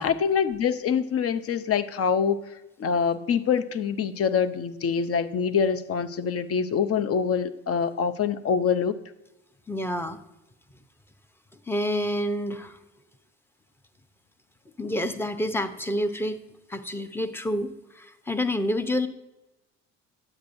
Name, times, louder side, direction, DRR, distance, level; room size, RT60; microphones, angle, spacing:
voice 1, 0.0-2.4 2.8-9.0, left 6 dB, 45° left, 11 dB, 0.7 m, -25 dB
voice 2, 9.7-10.2 11.7-12.8 14.8-16.4 16.7-19.1, left 1 dB, 5° left, 9 dB, 0.7 m, -28 dB
9.7 x 8.1 x 2.6 m, 0.95 s
supercardioid pair, 75°, 34 cm